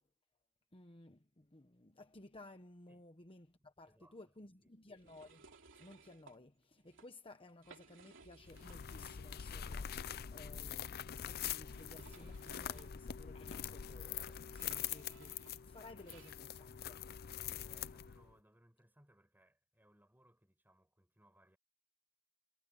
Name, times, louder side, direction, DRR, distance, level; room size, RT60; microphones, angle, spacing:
voice 1, 0.7-5.4 5.8-17.0, left 2 dB, 25° left, 1.2 m, -57 dB
voice 2, 3.8-4.3 4.6-4.7 16.8-17.0 17.4-21.6, right 1 dB, 10° right, 5.8 m, -69 dB
sound 1, 5.0-6.4 6.8-7.1 7.5-9.4 9.7-9.8 10.7-16.4, right 4 dB, 60° right, 2.9 m, -62 dB
sound 2, 8.4-18.3, left 9 dB, 45° left, 0.5 m, -44 dB
head